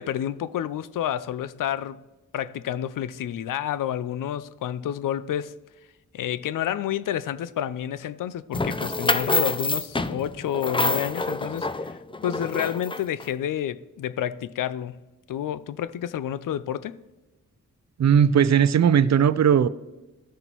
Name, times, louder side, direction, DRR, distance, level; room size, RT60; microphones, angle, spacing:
voice 1, 0.0-2.0 2.3-5.5 6.1-15.0 15.3-17.0, left 10 dB, 70° left, 0.5 m, -29 dB
sound 1, 8.5-13.2, left 2 dB, 15° left, 0.5 m, -27 dB
voice 2, 18.0-19.7, right 8 dB, 55° right, 0.5 m, -18 dB
14.5 x 6.7 x 3.0 m
supercardioid pair, 45°, 34 cm